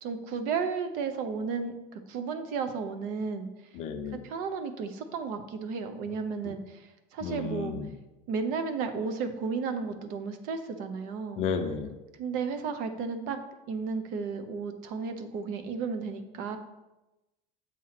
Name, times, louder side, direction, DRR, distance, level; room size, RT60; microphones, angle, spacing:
voice 1, 0.0-3.5 4.2-6.9 7.1-7.8 8.3-11.4 12.2-13.4 13.7-16.6, right 5 dB, 60° right, 8 dB, 0.7 m, -33 dB
voice 2, 3.7-4.2 7.2-7.9 11.4-11.9, left 5 dB, 40° left, 5 dB, 0.6 m, -32 dB
7.4 x 2.9 x 5.8 m, 1.0 s
cardioid pair, 170°, 16 cm